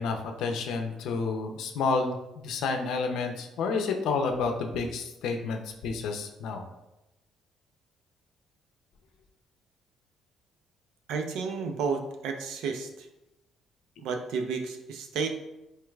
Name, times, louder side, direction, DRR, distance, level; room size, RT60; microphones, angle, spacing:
voice 1, 0.0-6.6, left 4 dB, 80° left, 4 dB, 0.5 m, -30 dB
voice 2, 11.1-13.1 14.0-15.3, right 5 dB, 85° right, 5 dB, 0.5 m, -32 dB
4.5 x 2.3 x 3.2 m, 0.94 s
cardioid pair, 105°, 0 cm